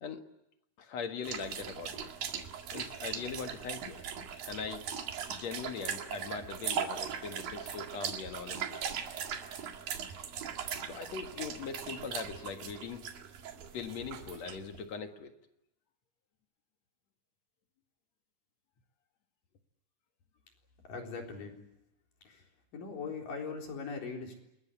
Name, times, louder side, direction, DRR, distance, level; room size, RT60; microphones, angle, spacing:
voice 1, 0.8-2.1 2.7-4.0 4.4-4.9 5.3-8.8 10.8-13.1 13.7-15.3, left 5 dB, 55° left, 6 dB, 2.6 m, -41 dB
sound 1, 1.2-14.8, right 7 dB, 90° right, 3.7 m, -39 dB
voice 2, 20.9-21.6 22.3-22.4 22.7-24.4, left 5 dB, 75° left, 2 dB, 5.5 m, -40 dB
28.5 x 21.5 x 8.2 m, 0.87 s
omnidirectional pair, 3.9 m